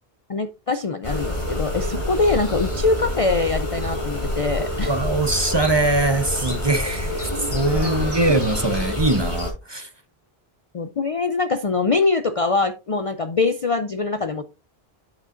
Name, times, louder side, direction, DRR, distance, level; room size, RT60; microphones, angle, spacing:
voice 1, 0.3-4.9 7.7-8.1 10.7-14.4, left 3 dB, 45° left, 0.5 m, -23 dB
sound 1, 1.0-9.5, left 1 dB, 30° left, 4.2 m, -27 dB
voice 2, 4.8-9.9, right 2 dB, 30° right, 0.7 m, -22 dB
9.4 x 7.4 x 2.5 m
omnidirectional pair, 1.1 m